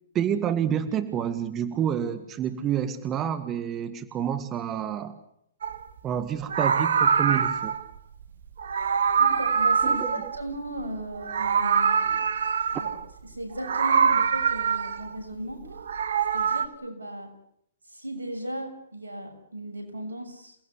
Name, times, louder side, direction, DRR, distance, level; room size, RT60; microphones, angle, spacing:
voice 1, 0.1-5.2 6.0-7.8 9.8-10.1, right 9 dB, 25° right, 10 dB, 1.8 m, -28 dB
Meow, 5.6-5.8 6.4-7.9 8.6-10.9 11.1-13.0 13.6-15.2 15.7-16.7, right 6 dB, 70° right, 1.7 m, -24 dB
voice 2, 9.2-12.9 13.2-15.7 16.3-17.3 17.9-20.6, right 1 dB, 90° right, 6 dB, 6.7 m, -37 dB
28.5 x 18.0 x 8.3 m, 0.72 s
hypercardioid pair, 125°, 0 cm